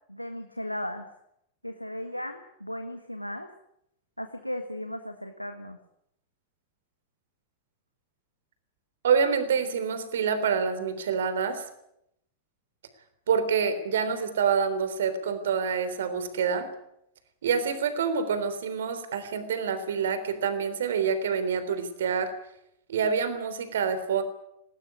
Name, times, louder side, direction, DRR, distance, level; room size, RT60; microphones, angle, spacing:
voice 1, 0.1-1.1 1.6-3.5 4.2-5.8, left 1 dB, 90° left, 6 dB, 1.6 m, -36 dB
voice 2, 9.0-11.6 13.3-16.7 17.4-22.3 22.9-24.2, right 6 dB, 60° right, 11 dB, 3.5 m, -27 dB
19.5 x 18.5 x 9.7 m, 0.79 s
figure-of-eight pair, 90°, 0 cm